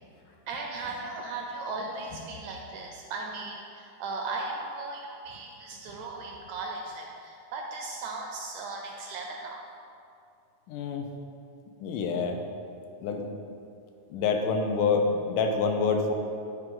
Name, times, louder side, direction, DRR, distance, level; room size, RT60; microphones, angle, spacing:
voice 1, 0.5-9.7, right 3 dB, 80° right, 1 dB, 1.7 m, -37 dB
voice 2, 10.7-11.1 11.8-12.4 13.0-13.3 14.1-16.1, left 4 dB, 90° left, 4 dB, 2.2 m, -27 dB
10.0 x 4.6 x 3.7 m, 2.5 s
omnidirectional pair, 3.6 m